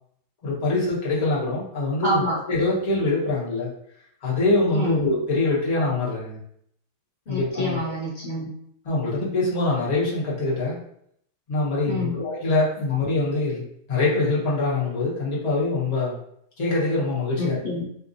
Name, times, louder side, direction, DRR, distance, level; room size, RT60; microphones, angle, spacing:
voice 1, 0.4-3.7 4.2-6.4 7.3-7.8 8.8-10.8 11.5-13.6 13.9-16.2 16.6-17.6, left 2 dB, 30° left, -7 dB, 0.9 m, -24 dB
voice 2, 2.0-2.3 4.7-5.0 7.3-8.5 11.9-12.2 17.4-17.9, equal, 70° left, -5 dB, 0.4 m, -27 dB
3.3 x 2.6 x 2.6 m, 0.70 s
omnidirectional pair, 1.7 m